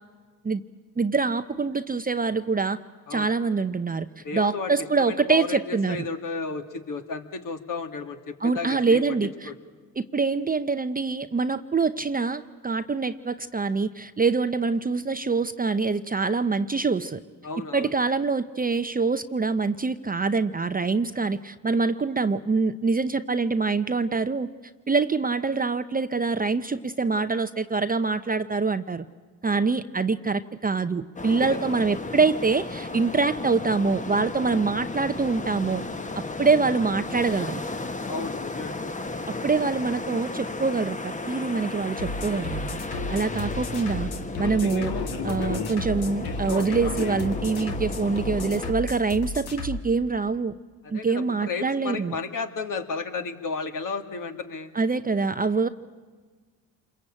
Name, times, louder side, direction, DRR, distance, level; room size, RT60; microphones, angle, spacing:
voice 1, 1.0-2.8 3.1-4.1 4.3-6.1 8.4-9.5 10.0-17.2 17.7-24.5 24.9-29.0 29.4-35.8 36.1-37.6 39.3-42.8 43.1-44.1 44.4-44.9 45.2-50.5 50.9-52.2 54.7-55.7, right 4 dB, 20° right, 11 dB, 0.8 m, -25 dB
voice 2, 4.2-4.8 5.0-9.0 9.4-9.5 17.4-17.9 29.4-29.7 31.3-31.7 36.3-36.4 38.0-38.8 43.1-43.3 50.8-54.7, left 4 dB, 50° left, 6 dB, 2.5 m, -33 dB
sound 1, 31.2-48.7, left 2 dB, 20° left, 1.4 m, -34 dB
sound 2, 42.0-49.8, left 3 dB, 65° left, 2.4 m, -32 dB
27.5 x 22.0 x 8.8 m, 1.5 s
supercardioid pair, 75°, 40 cm